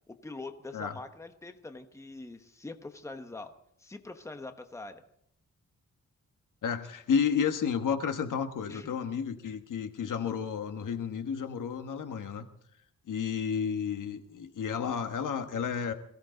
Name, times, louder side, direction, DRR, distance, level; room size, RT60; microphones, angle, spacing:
voice 1, 0.1-3.5 3.8-5.0 8.7-8.9, left 3 dB, 10° left, 7 dB, 1.0 m, -43 dB
voice 2, 6.6-12.5 13.1-15.9, left 7 dB, 85° left, 7 dB, 1.5 m, -31 dB
22.5 x 16.0 x 3.9 m, 0.70 s
wide cardioid pair, 160°, 31 cm